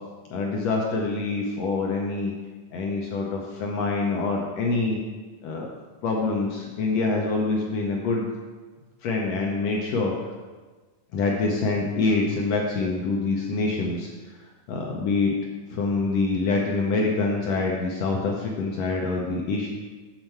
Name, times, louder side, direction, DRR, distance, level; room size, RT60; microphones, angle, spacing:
voice 1, 0.3-2.3 2.7-5.0 5.4-5.7 6.0-8.2 9.0-10.1 11.1-14.1 14.7-15.3 15.7-19.7, left 3 dB, 75° left, -1 dB, 1.5 m, -25 dB
7.3 x 6.7 x 4.5 m, 1.3 s
omnidirectional pair, 3.8 m